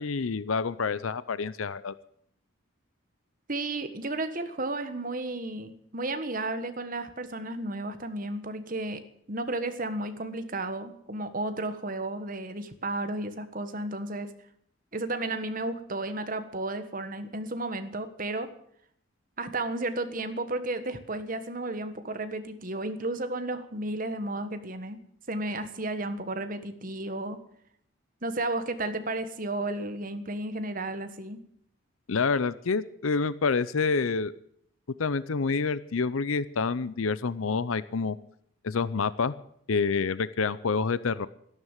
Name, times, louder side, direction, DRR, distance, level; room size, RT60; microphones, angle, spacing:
voice 1, 0.0-1.9 32.1-34.3 35.0-38.2 38.6-39.3 39.7-41.3, left 4 dB, 80° left, 17 dB, 0.6 m, -27 dB
voice 2, 3.5-9.0 9.3-14.3 14.9-18.5 19.4-25.0 25.3-27.4 28.2-31.4, right 2 dB, 40° right, 10 dB, 1.5 m, -33 dB
13.0 x 12.0 x 9.0 m, 0.69 s
head